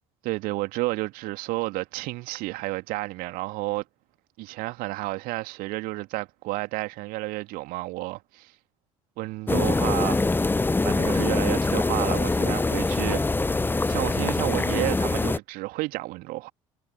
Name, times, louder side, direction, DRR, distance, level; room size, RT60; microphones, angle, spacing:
voice 1, 0.2-3.8 4.4-8.5 9.2-10.5 10.8-13.5 13.9-16.5, right 21 dB, 55° right, 2.7 m, -31 dB
sound 1, 9.5-15.4, left 3 dB, 10° left, 0.9 m, -24 dB
figure-of-eight pair, 55°, 17 cm